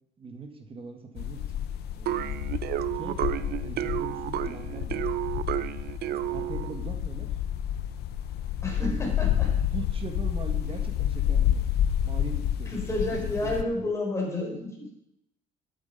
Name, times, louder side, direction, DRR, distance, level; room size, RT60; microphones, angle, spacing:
voice 1, 0.2-1.7 1.9-5.2 6.0-7.3 8.8-9.0 9.7-11.7 12.0-13.8, right 4 dB, 35° right, 5 dB, 1.9 m, -41 dB
sound 1, 1.2-13.6, left 10 dB, 75° left, 0.9 m, -29 dB
sound 2, 2.1-6.8, right 13 dB, 65° right, 0.6 m, -31 dB
voice 2, 8.6-9.5 12.7-14.9, left 2 dB, 15° left, -2 dB, 4.6 m, -30 dB
12.0 x 8.1 x 5.5 m, 0.80 s
cardioid pair, 110°, 17 cm